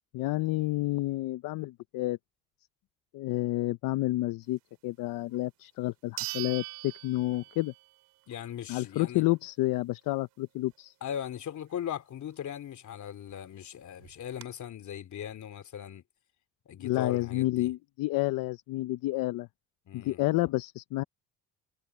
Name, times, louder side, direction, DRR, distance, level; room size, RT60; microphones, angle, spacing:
voice 1, 0.1-2.2 3.1-7.7 8.7-10.9 16.8-19.5 19.9-21.0, left 18 dB, 80° left, 0.8 m, -30 dB
sound 1, 5.3-5.4 6.2-7.9 8.3-8.4 13.0-13.1 13.3-13.4 14.0-14.4, right 20 dB, 85° right, 2.9 m, -40 dB
voice 2, 8.3-9.2 11.0-16.0 16.7-17.7 19.9-20.2, left 9 dB, 60° left, 3.0 m, -39 dB
supercardioid pair, 85°, 33 cm